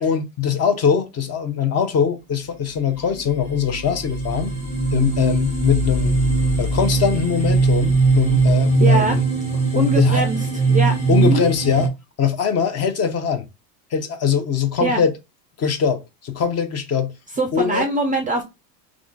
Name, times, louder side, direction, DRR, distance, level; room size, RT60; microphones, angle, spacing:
voice 1, 0.0-4.5 4.9-6.2 6.6-9.3 9.7-10.2 11.1-11.9 12.2-13.5 13.9-15.1 15.6-17.1 17.5-17.9, left 7 dB, 35° left, 0.5 m, -22 dB
sound 1, 2.9-3.0 3.4-11.9, right 4 dB, 15° left, 1.1 m, -20 dB
voice 2, 8.8-9.2 9.7-10.4 10.7-11.5 14.8-15.0 17.4-18.4, right 2 dB, 20° right, 0.3 m, -22 dB
3.6 x 2.3 x 2.4 m
supercardioid pair, 100°, 49 cm